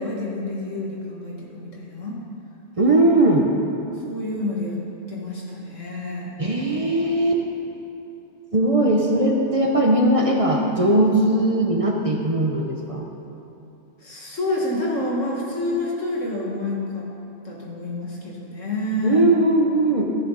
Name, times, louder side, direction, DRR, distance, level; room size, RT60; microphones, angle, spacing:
voice 1, 0.0-2.2 4.1-4.8 5.1-6.3 14.0-17.1 17.4-19.2, left 2 dB, 90° left, -3 dB, 2.3 m, -28 dB
voice 2, 2.8-3.5 6.4-7.4 8.5-13.1 19.0-20.1, right 1 dB, 30° right, 0 dB, 0.9 m, -19 dB
13.5 x 11.0 x 4.1 m, 2.8 s
omnidirectional pair, 1.3 m